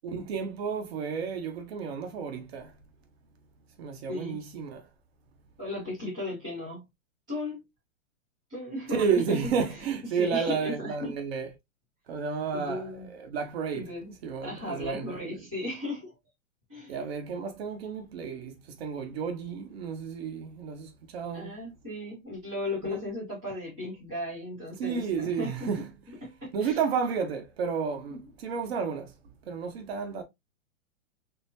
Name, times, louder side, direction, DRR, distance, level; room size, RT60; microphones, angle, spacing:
voice 1, 0.0-2.7 3.8-4.9 8.9-11.5 12.1-13.9 14.2-15.5 16.9-21.6 24.8-25.9 26.5-29.1 29.4-30.2, right 6 dB, 50° right, 1.0 m, -32 dB
voice 2, 4.1-4.4 5.6-6.8 7.3-7.6 8.5-9.5 10.1-11.1 12.5-13.1 13.7-14.1 14.4-16.1 16.7-16.9 21.3-25.7 26.2-26.8 28.1-28.2, left 1 dB, 5° right, 0.3 m, -36 dB
3.3 x 2.8 x 2.7 m
hypercardioid pair, 155°, 40 cm